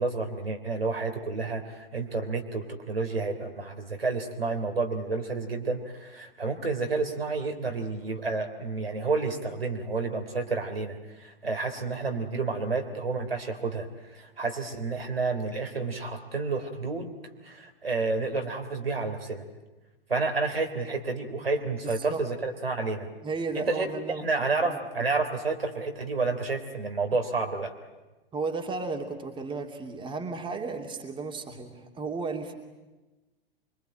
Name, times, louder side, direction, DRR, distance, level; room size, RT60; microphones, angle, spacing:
voice 1, 0.0-17.1 17.4-19.5 20.1-23.1 23.5-27.7, right 3 dB, 80° right, 4 dB, 3.4 m, -30 dB
voice 2, 21.8-22.2 23.2-24.2 24.6-25.1 28.3-32.5, right 4 dB, 15° right, 3 dB, 2.9 m, -34 dB
25.0 x 24.0 x 8.8 m, 1.1 s
figure-of-eight pair, 100°, 29 cm